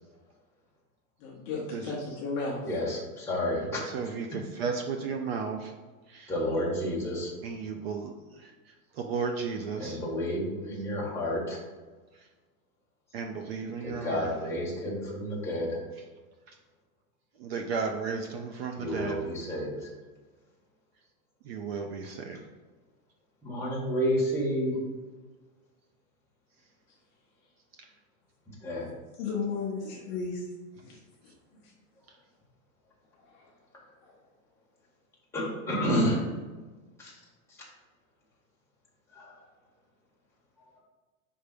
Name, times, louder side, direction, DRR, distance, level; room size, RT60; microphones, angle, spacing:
voice 1, 1.2-2.6 29.2-30.4 30.8-31.0 31.6-31.7 33.3-33.5 34.0-34.1, left 4 dB, 25° left, -2 dB, 0.6 m, -34 dB
voice 2, 2.6-3.9 4.3-4.4 6.3-7.3 9.8-11.6 13.8-15.8 18.7-19.9 23.4-24.8 28.6-28.9 35.3-36.3 37.0-37.1 37.5-37.6 39.1-39.3, equal, 5° left, -6 dB, 1.2 m, -30 dB
voice 3, 3.9-5.7 6.1-6.3 7.4-8.1 8.4-8.5 9.0-10.0 13.1-14.3 17.4-19.2 21.5-22.4, right 5 dB, 45° right, 4 dB, 0.5 m, -34 dB
5.4 x 3.4 x 5.1 m, 1.3 s
supercardioid pair, 165°, 44 cm